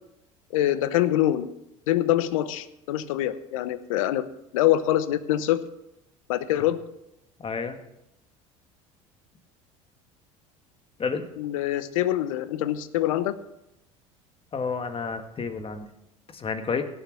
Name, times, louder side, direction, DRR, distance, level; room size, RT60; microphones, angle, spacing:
voice 1, 0.5-1.5 1.9-4.2 4.5-5.6 6.3-6.8 11.4-13.4, left 13 dB, 80° left, 14 dB, 0.9 m, -24 dB
voice 2, 7.4-7.8 11.0-11.2 14.5-15.9 16.3-16.8, left 5 dB, 30° left, 7 dB, 1.7 m, -30 dB
17.5 x 7.1 x 6.2 m, 0.86 s
hypercardioid pair, 75°, 17 cm